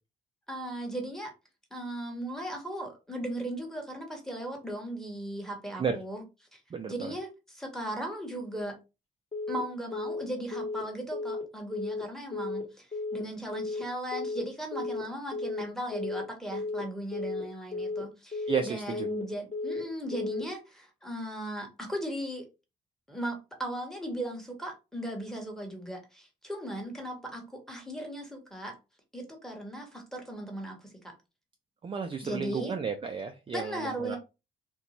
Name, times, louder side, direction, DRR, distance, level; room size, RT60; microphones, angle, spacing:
voice 1, 0.5-1.3 1.7-6.2 6.5-6.6 6.9-8.8 9.5-22.5 23.1-28.8 29.1-31.1 32.2-32.7 33.5-34.2, right 1 dB, ahead, 1.0 m, -37 dB
voice 2, 6.7-7.1 18.5-19.1 31.8-34.2, right 6 dB, 25° right, 0.4 m, -33 dB
Telephone, 9.3-9.6 9.9-10.2 10.5-10.8 11.1-11.4 11.7-12.0 12.3-12.6 12.9-13.2 13.5-13.8 14.1-14.4 14.7-15.0 15.3-15.6 15.9-16.2 16.5-16.8 17.1-17.4 17.7-18.0 18.3-18.6 18.9-19.2 19.5-19.8 20.1-20.4, left 3 dB, 30° left, 1.1 m, -34 dB
2.6 x 2.2 x 2.9 m
cardioid pair, 90°, 20 cm